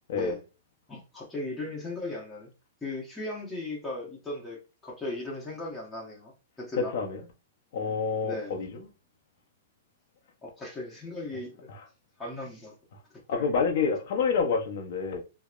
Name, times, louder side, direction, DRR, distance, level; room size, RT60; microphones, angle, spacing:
voice 1, 0.9-2.5 2.8-6.3 6.6-6.9 8.2-8.6 10.4-11.7 12.2-12.7 13.3-13.5, left 2 dB, 10° left, 0.9 m, -37 dB
voice 2, 6.8-7.2 7.7-8.7 13.3-15.2, left 5 dB, 60° left, 0.5 m, -27 dB
2.9 x 2.0 x 2.3 m
hypercardioid pair, 125°, 0 cm